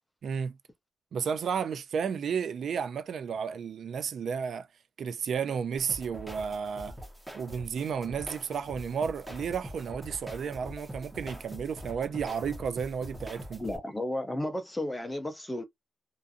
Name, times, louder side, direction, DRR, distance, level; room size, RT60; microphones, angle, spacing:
voice 1, 0.2-0.6 1.1-4.7 5.0-7.0 7.3-13.6, right 6 dB, 85° right, 0.3 m, -32 dB
sound 1, 5.8-13.8, equal, 10° right, 0.8 m, -43 dB
voice 2, 13.6-15.6, left 1 dB, 10° left, 0.5 m, -33 dB
2.5 x 2.4 x 2.5 m
wide cardioid pair, 175°, 0 cm